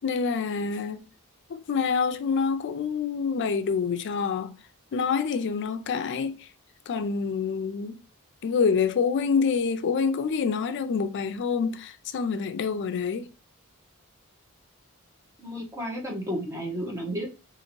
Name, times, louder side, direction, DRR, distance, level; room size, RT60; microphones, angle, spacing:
voice 1, 0.0-1.0 1.5-4.5 4.9-6.5 6.9-8.0 8.4-13.3, left 5 dB, 55° left, 0.4 m, -27 dB
voice 2, 15.4-17.4, equal, 15° right, 0.8 m, -32 dB
2.6 x 2.5 x 2.9 m
head